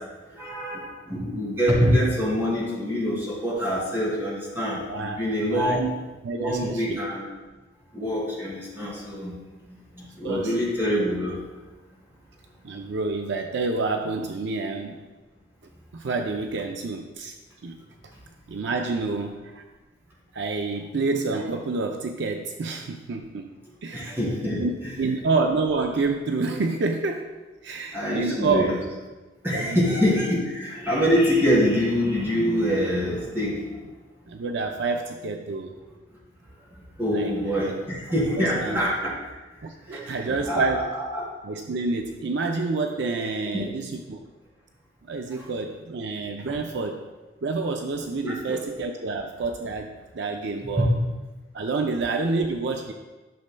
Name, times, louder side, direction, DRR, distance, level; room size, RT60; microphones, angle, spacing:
voice 1, 0.4-5.9 6.3-7.3 7.9-9.3 9.7-11.4 23.9-24.9 27.9-28.8 29.4-33.7 37.0-39.1 39.9-41.3 43.5-43.7 45.4-45.5 48.2-48.6 50.8-50.9, equal, 10° right, -6 dB, 2.5 m, -25 dB
voice 2, 5.5-5.9 6.2-7.0 10.2-10.5 12.6-15.0 15.9-17.3 17.6-17.7 18.5-19.6 20.3-23.5 23.8-24.2 24.6-27.3 27.6-28.7 29.5-30.0 34.3-35.7 37.1-37.7 38.4-38.8 39.6-40.9 41.4-44.2 45.1-47.0 47.4-49.9 50.1-50.9 51.5-52.9, right 3 dB, 65° right, 4 dB, 0.5 m, -28 dB
12.0 x 6.4 x 2.2 m, 1.2 s
head